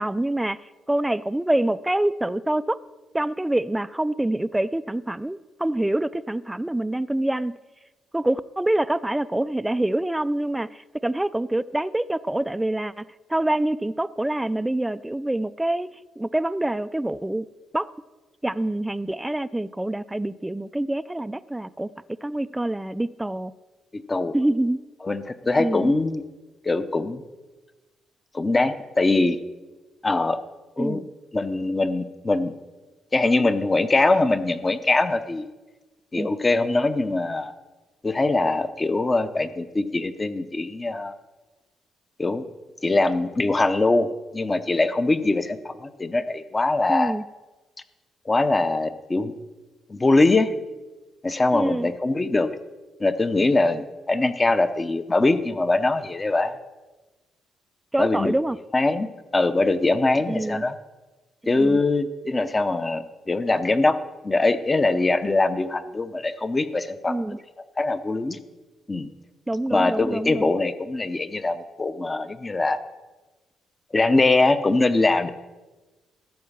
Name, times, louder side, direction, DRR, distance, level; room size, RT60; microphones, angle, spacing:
voice 1, 0.0-2.8 3.1-7.6 8.1-15.9 16.2-17.4 17.7-17.9 18.4-21.9 22.2-23.5 24.3-24.8 25.6-25.9 30.8-31.0 36.2-36.3 46.9-47.2 51.5-51.9 57.9-58.6 60.3-60.7 61.5-61.8 67.1-67.4 69.5-70.5, right 1 dB, 10° right, 14 dB, 0.3 m, -26 dB
voice 2, 23.9-24.3 25.0-26.2 26.6-27.2 28.3-29.4 30.0-30.4 30.8-31.0 31.3-32.5 33.1-35.5 36.1-37.5 38.0-41.1 42.2-42.4 42.8-47.1 48.3-49.3 49.9-50.5 51.2-52.5 53.0-56.5 58.0-58.3 58.7-60.7 61.5-64.0 64.2-67.2 67.8-68.4 68.9-69.1 69.7-72.8 73.9-75.3, left 2 dB, 25° left, 12 dB, 0.7 m, -22 dB
13.5 x 4.7 x 7.2 m, 1.2 s
cardioid pair, 90°, 0 cm